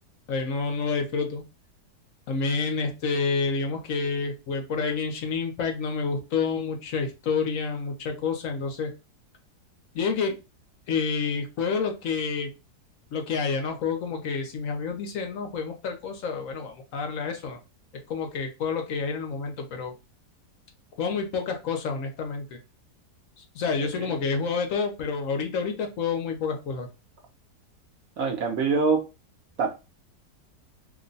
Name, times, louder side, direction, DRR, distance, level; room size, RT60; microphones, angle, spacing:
voice 1, 0.3-1.4 2.3-8.9 9.9-10.4 10.9-12.5 13.1-17.6 18.1-19.9 21.0-22.6 23.5-26.9, left 5 dB, 60° left, 1.0 m, -29 dB
voice 2, 28.2-29.1 29.6-29.7, right 4 dB, 65° right, 1.0 m, -24 dB
3.0 x 2.2 x 3.9 m
omnidirectional pair, 1.8 m